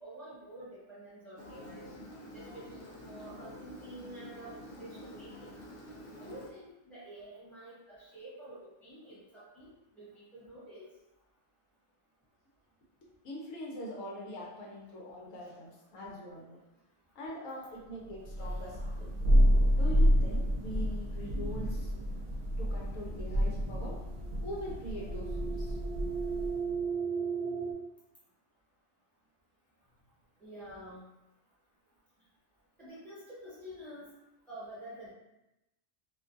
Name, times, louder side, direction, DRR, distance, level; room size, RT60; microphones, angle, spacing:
voice 1, 0.0-1.9 2.3-5.6 6.2-10.9 30.4-31.0 32.8-34.1 34.5-35.1, right 1 dB, ahead, -10 dB, 1.0 m, -49 dB
Engine, 1.4-6.5, left 1 dB, 65° left, 0.6 m, -48 dB
voice 2, 13.2-16.6 17.2-19.1 19.7-21.9 22.6-23.9 24.4-25.8, equal, 80° left, -4 dB, 1.0 m, -43 dB
Thunder, 18.2-26.7, equal, 65° right, 0.8 m, -29 dB
sound 1, 23.8-27.7, right 6 dB, 85° right, 0.3 m, -36 dB
2.5 x 2.3 x 2.5 m, 0.93 s
omnidirectional pair, 1.4 m